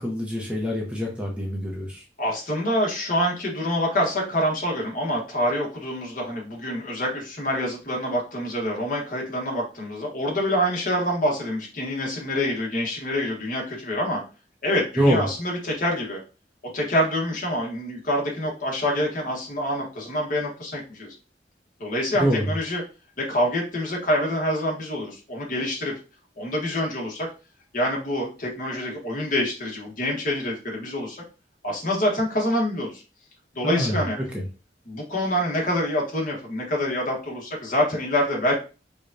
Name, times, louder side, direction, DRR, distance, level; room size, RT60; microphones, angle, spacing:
voice 1, 0.0-2.0 15.0-15.2 22.1-22.5 33.6-34.0 34.3-34.4, equal, 5° right, -2 dB, 0.9 m, -24 dB
voice 2, 2.2-14.2 14.6-16.2 16.7-21.1 21.8-22.8 23.2-25.9 26.4-27.3 27.7-31.2 31.6-33.0 33.5-34.2 34.9-38.5, equal, 50° left, -2 dB, 1.3 m, -26 dB
4.9 x 2.4 x 2.7 m, 0.32 s
head